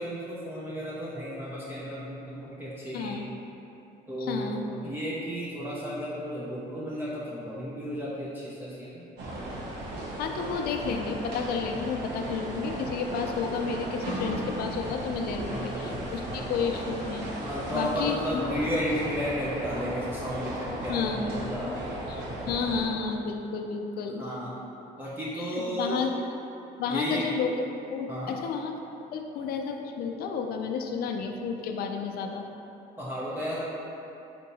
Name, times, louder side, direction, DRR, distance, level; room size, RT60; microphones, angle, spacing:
voice 1, 0.0-3.4 4.1-9.1 15.5-15.8 16.2-16.5 17.4-21.7 24.2-24.5 25.0-26.1 26.9-27.2 28.1-28.3 33.0-33.6, equal, 10° right, -8 dB, 0.6 m, -33 dB
voice 2, 2.9-3.3 4.2-4.6 10.2-17.3 17.7-18.6 20.9-21.3 21.7-21.8 22.1-24.3 25.4-26.1 26.8-27.6 27.9-28.8 29.1-32.4, left 5 dB, 65° left, 4 dB, 0.4 m, -31 dB
sound 1, 9.2-22.9, right 1 dB, 85° right, 0.8 m, -36 dB
4.4 x 2.7 x 4.0 m, 2.9 s
cardioid pair, 110°, 17 cm